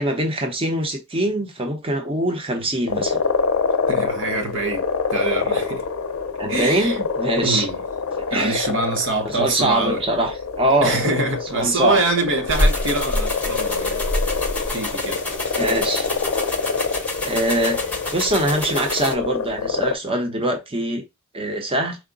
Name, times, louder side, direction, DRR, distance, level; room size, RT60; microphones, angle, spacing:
voice 1, 0.0-3.2 6.4-7.7 8.3-8.7 9.4-11.0 11.5-12.0 15.6-16.1 17.2-17.8 18.1-21.0 21.3-22.0, right 1 dB, 25° right, 0.8 m, -23 dB
sound 1, 2.9-19.9, left 5 dB, 70° left, 0.6 m, -26 dB
voice 2, 3.9-5.8 6.5-7.0 7.4-7.8 8.3-10.0 10.8-14.0 14.7-15.2, right 2 dB, 60° right, 1.0 m, -25 dB
sound 2, 12.5-19.1, left 1 dB, 5° left, 0.9 m, -27 dB
4.7 x 2.1 x 3.8 m
head